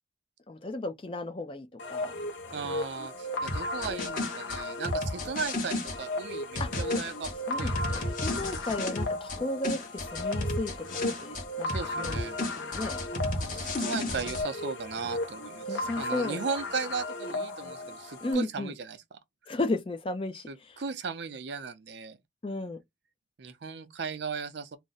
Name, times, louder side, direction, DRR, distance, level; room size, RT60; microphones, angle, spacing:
voice 1, 0.5-2.2 6.6-6.7 7.5-12.2 12.6-13.7 15.7-16.4 18.2-18.7 19.5-20.8 22.4-22.8, left 2 dB, 30° left, 0.4 m, -34 dB
sound 1, 1.8-18.3, left 2 dB, 75° left, 0.7 m, -36 dB
voice 2, 2.5-7.3 7.6-8.0 11.7-12.4 13.4-19.0 20.5-22.2 23.4-24.8, right 5 dB, 65° right, 0.5 m, -36 dB
sound 2, 3.5-6.0 6.6-9.4 9.6-11.4 11.7-14.4, left 1 dB, 45° left, 0.9 m, -33 dB
2.5 x 2.1 x 3.8 m
head